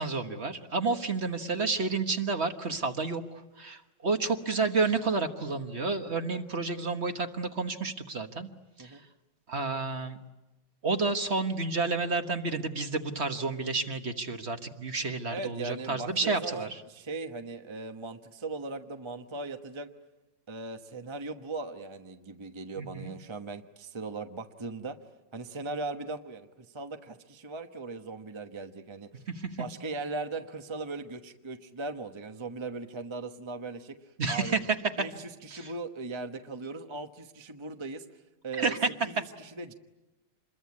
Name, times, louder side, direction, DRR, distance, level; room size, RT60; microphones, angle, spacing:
voice 1, 0.0-8.5 8.8-9.0 9.5-10.2 10.8-16.8 22.8-23.1 29.3-29.5 34.2-34.8 35.5-35.7 38.6-38.9, right 3 dB, 40° right, 7 dB, 1.4 m, -30 dB
voice 2, 15.3-19.9 20.5-25.0 25.3-29.1 29.5-34.6 35.0-38.7 39.0-39.7, right 3 dB, 20° right, 6 dB, 0.9 m, -39 dB
27.5 x 22.0 x 9.6 m, 1.1 s
omnidirectional pair, 1.9 m